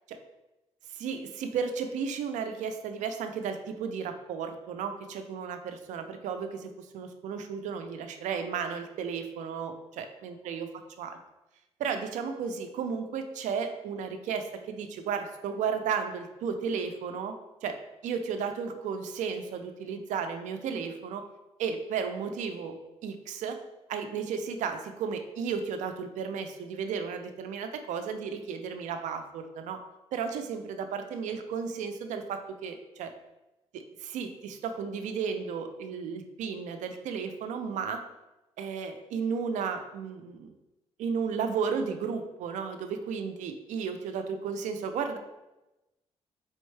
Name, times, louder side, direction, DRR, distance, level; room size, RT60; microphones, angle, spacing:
voice 1, 0.9-10.7 11.0-11.2 11.8-17.3 17.6-17.8 18.0-21.2 21.6-23.6 23.9-29.8 30.1-33.1 33.7-38.0 38.6-40.5 41.0-45.2, right 6 dB, 85° right, 7 dB, 0.5 m, -34 dB
4.3 x 3.5 x 3.2 m, 1.0 s
cardioid pair, 85°, 12 cm